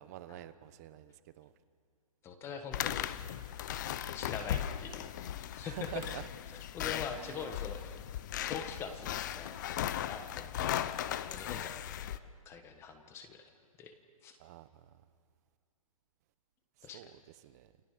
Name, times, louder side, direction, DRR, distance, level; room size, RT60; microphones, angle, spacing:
voice 1, 0.0-1.5 5.6-6.3 7.1-7.5 10.6-10.8 14.4-15.0 16.8-17.7, right 14 dB, 30° right, 13 dB, 0.9 m, -48 dB
voice 2, 2.2-3.1 4.1-5.3 5.6-6.0 6.7-8.0 8.4-10.5 11.3-12.1 12.4-13.5 13.8-13.9 14.2-14.4 16.8-17.1, left 6 dB, 15° left, 7 dB, 1.5 m, -43 dB
sound 1, 2.7-12.2, left 11 dB, 30° left, 0.7 m, -37 dB
sound 2, 5.5-6.7 7.0-7.4 8.8-10.0, left 4 dB, 90° left, 2.6 m, -60 dB
29.0 x 23.5 x 6.7 m, 2.1 s
hypercardioid pair, 165°, 18 cm